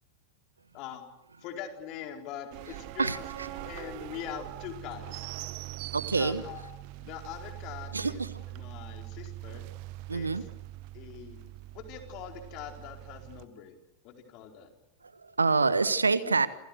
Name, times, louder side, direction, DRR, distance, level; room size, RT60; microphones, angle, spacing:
voice 1, 1.4-3.2 3.5-5.3 6.1-6.7 7.0-8.2 8.5-9.7 10.1-10.3 10.9-11.4 11.7-13.8 14.0-14.7 16.2-16.3, left 9 dB, 40° left, 4 dB, 4.5 m, -42 dB
sound 1, 2.5-13.5, right 17 dB, 45° right, 1.4 m, -42 dB
voice 2, 3.0-3.5 5.9-6.4 7.9-8.3 10.1-10.4 15.1-16.5, right 4 dB, 75° right, 15 dB, 1.3 m, -27 dB
28.0 x 28.0 x 6.5 m, 0.82 s
figure-of-eight pair, 90°, 0 cm